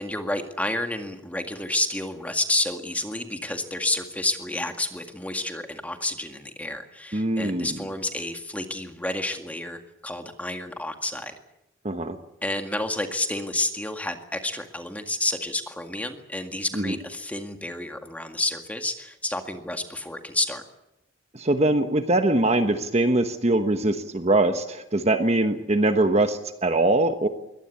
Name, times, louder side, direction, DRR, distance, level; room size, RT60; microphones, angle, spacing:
voice 1, 0.0-11.3 12.4-20.6, left 2 dB, 5° left, 5 dB, 1.9 m, -30 dB
voice 2, 7.1-7.8 11.8-12.2 16.7-17.0 21.3-27.3, right 2 dB, 35° right, 8 dB, 1.2 m, -22 dB
23.0 x 18.5 x 8.4 m, 0.88 s
head